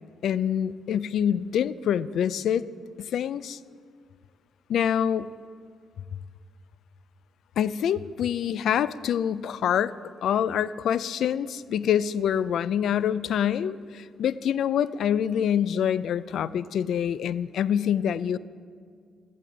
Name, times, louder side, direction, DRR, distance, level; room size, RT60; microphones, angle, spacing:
voice 1, 0.2-2.7 3.0-3.6 4.7-5.3 7.6-9.9 10.2-18.4, left 9 dB, 70° left, 17 dB, 0.4 m, -26 dB
16.0 x 14.0 x 4.0 m, 2.1 s
cardioid pair, 90°, 0 cm